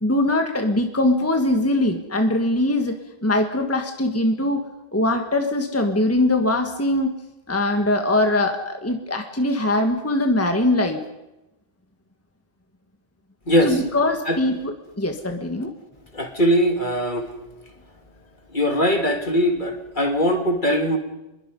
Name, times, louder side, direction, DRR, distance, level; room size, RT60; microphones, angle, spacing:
voice 1, 0.0-4.6 4.9-7.1 7.5-11.0 13.6-15.7, left 1 dB, 15° left, 5 dB, 1.5 m, -22 dB
voice 2, 13.5-13.8 14.3-14.4 16.1-17.3 18.5-21.0, equal, 45° left, 5 dB, 2.6 m, -21 dB
26.0 x 21.5 x 5.4 m, 0.95 s
omnidirectional pair, 1.1 m